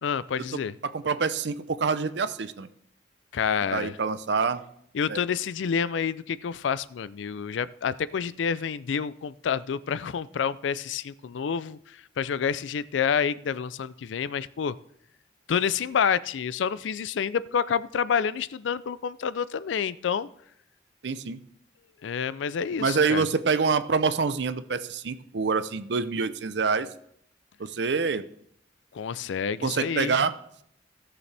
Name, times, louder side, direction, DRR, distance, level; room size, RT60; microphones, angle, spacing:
voice 1, 0.0-0.7 3.3-4.0 4.9-14.8 15.5-20.3 22.0-23.2 28.9-30.2, left 7 dB, 85° left, 18 dB, 0.4 m, -28 dB
voice 2, 0.5-2.7 3.7-4.6 5.1-5.2 21.0-21.4 22.8-26.9 27.6-28.2 29.6-30.4, right 5 dB, 65° right, 13 dB, 0.6 m, -26 dB
16.0 x 6.9 x 3.3 m, 0.70 s
head